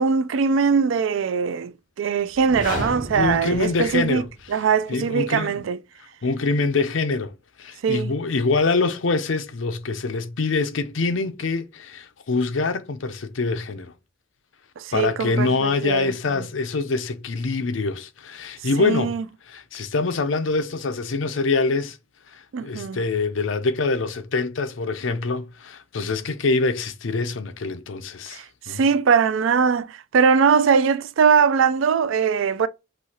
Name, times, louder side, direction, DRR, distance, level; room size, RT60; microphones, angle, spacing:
voice 1, 0.0-1.7 2.0-4.2 4.5-5.8 7.8-8.1 14.8-16.1 18.8-19.2 22.5-23.0 28.3-28.4 28.7-32.7, right 6 dB, 90° right, 0.4 m, -21 dB
sound 1, 2.3-4.5, equal, 45° left, 2.4 m, -32 dB
voice 2, 3.2-4.3 4.9-5.6 6.2-7.3 7.6-13.9 14.9-19.1 19.5-22.0 22.3-28.8, left 3 dB, 80° left, 0.6 m, -25 dB
6.0 x 2.7 x 2.8 m
head